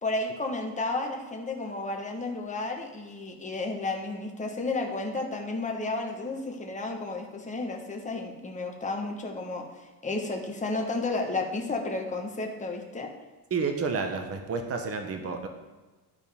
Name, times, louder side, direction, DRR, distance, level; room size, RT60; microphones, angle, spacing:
voice 1, 0.0-13.1, left 2 dB, 15° left, 1 dB, 1.2 m, -32 dB
voice 2, 13.5-15.5, right 4 dB, 35° right, 5 dB, 1.0 m, -30 dB
13.0 x 4.4 x 3.6 m, 1.2 s
cardioid pair, 110°, 43 cm